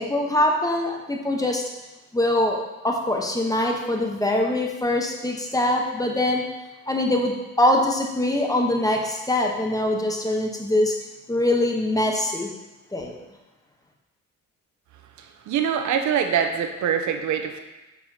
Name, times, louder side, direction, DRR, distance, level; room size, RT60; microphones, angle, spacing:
voice 1, 0.0-1.6 2.1-6.4 6.9-10.9 11.3-12.5 12.9-13.2, left 1 dB, 10° left, 1 dB, 0.9 m, -23 dB
voice 2, 15.5-17.6, right 8 dB, 70° right, 6 dB, 0.7 m, -24 dB
6.7 x 5.7 x 2.8 m, 1.1 s
cardioid pair, 90°, 30 cm